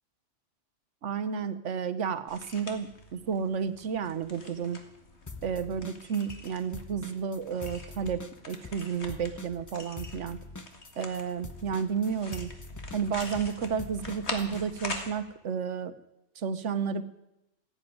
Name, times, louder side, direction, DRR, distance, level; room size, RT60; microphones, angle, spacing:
voice 1, 1.0-4.8 5.4-10.4 11.0-12.5 12.9-15.9 16.4-17.0, right 6 dB, 75° right, 12 dB, 1.3 m, -32 dB
sound 1, 2.3-15.1, left 3 dB, 65° left, 2.1 m, -44 dB
sound 2, 5.3-6.5 6.7-14.6, left 3 dB, 20° left, 0.7 m, -44 dB
16.0 x 8.9 x 9.5 m, 0.88 s
omnidirectional pair, 1.2 m